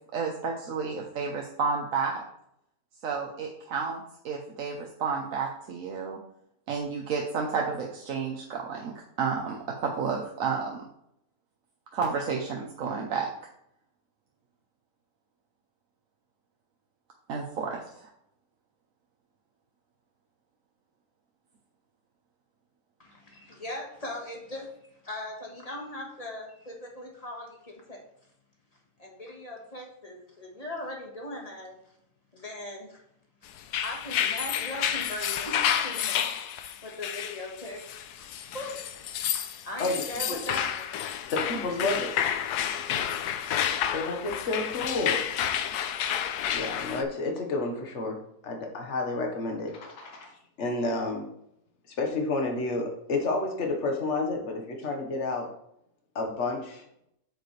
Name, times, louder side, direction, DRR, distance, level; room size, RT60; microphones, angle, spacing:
voice 1, 0.1-2.2 3.0-6.2 6.7-10.8 11.9-13.3 17.3-18.1, right 5 dB, 60° right, 0 dB, 1.2 m, -31 dB
voice 2, 23.0-24.7 25.0-28.0 29.0-31.7 32.3-33.0 33.8-36.3 36.6-37.8 38.1-38.3 38.5-38.8 39.2-39.3 39.6-40.9, left 1 dB, 25° left, -1 dB, 1.6 m, -39 dB
sound 1, 33.6-47.0, left 9 dB, 90° left, 1.2 m, -30 dB
voice 3, 41.3-42.2 43.9-45.2 46.5-50.3 50.6-51.3 51.9-55.5 56.1-56.8, left 2 dB, 50° left, 2 dB, 1.6 m, -30 dB
8.5 x 6.7 x 3.3 m, 0.75 s
omnidirectional pair, 1.6 m